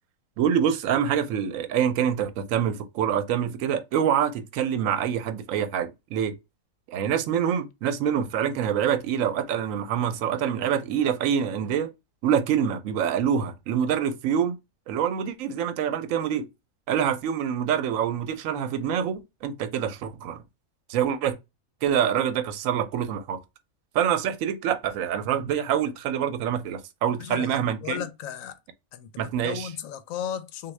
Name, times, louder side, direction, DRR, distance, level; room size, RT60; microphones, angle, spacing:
voice 1, 0.4-6.3 6.9-11.9 12.2-14.6 14.9-16.4 16.9-20.4 20.9-21.4 21.8-23.4 23.9-28.0 29.2-29.7, right 8 dB, 80° right, 1.0 m, -26 dB
voice 2, 27.2-28.6 28.9-30.7, left 10 dB, 85° left, 1.0 m, -35 dB
3.5 x 2.6 x 3.1 m
omnidirectional pair, 1.4 m